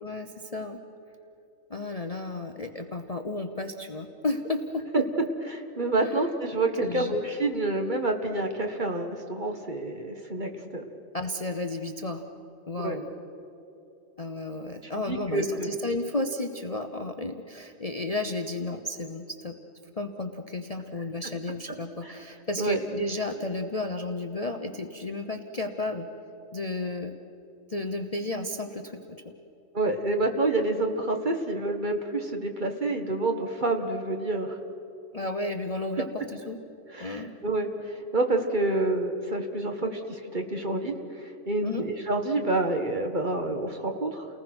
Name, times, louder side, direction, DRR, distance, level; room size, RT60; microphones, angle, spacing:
voice 1, 0.0-0.8 1.7-4.8 6.0-6.2 6.8-7.2 11.1-12.2 12.7-13.1 14.2-19.5 20.0-26.1 26.5-27.1 27.7-29.3 35.1-36.6 37.0-37.3 41.6-41.8, left 2 dB, 30° left, 6 dB, 0.9 m, -33 dB
voice 2, 5.5-10.9 12.8-13.0 14.9-15.7 22.0-22.2 22.6-22.8 29.7-34.6 36.9-44.3, right 2 dB, 35° right, 4 dB, 1.7 m, -28 dB
30.0 x 19.5 x 6.2 m, 2.9 s
omnidirectional pair, 1.4 m